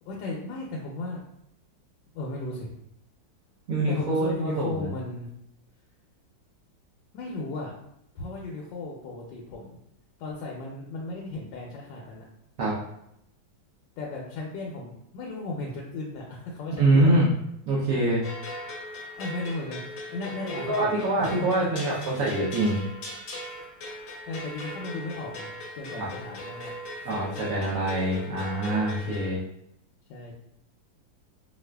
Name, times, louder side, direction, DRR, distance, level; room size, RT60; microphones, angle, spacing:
voice 1, 0.1-1.2 2.1-2.7 3.9-5.3 7.1-7.7 8.2-9.8 10.2-12.2 14.0-17.2 19.2-19.8 20.1-21.7 24.3-26.7 27.1-27.4 30.1-30.3, left 2 dB, 75° left, -2 dB, 1.2 m, -35 dB
voice 2, 3.7-4.9 12.6-12.7 16.8-17.3 17.7-18.2 20.4-22.8 26.0-26.1 27.0-29.4, right 2 dB, 65° right, -6 dB, 0.9 m, -24 dB
sound 1, 18.2-29.3, left 1 dB, 55° left, 0.9 m, -39 dB
4.7 x 2.4 x 2.2 m, 0.79 s
omnidirectional pair, 2.1 m